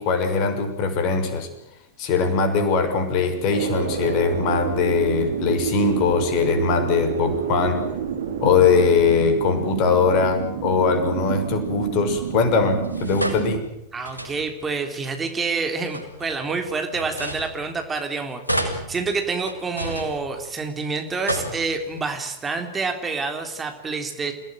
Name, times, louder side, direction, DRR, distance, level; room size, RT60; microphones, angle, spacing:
voice 1, 0.0-1.5 2.0-7.8 8.4-13.7, left 5 dB, 40° left, 7 dB, 6.1 m, -21 dB
sound 1, 3.5-13.6, right 7 dB, 60° right, 3.2 m, -29 dB
sound 2, 12.8-14.7 15.7-18.1 18.4-20.7 21.1-22.1, right 1 dB, 85° left, 6.0 m, -32 dB
voice 2, 13.9-24.3, right 4 dB, 15° right, 5 dB, 3.6 m, -28 dB
29.5 x 18.5 x 9.2 m, 0.82 s
figure-of-eight pair, 90°, 0 cm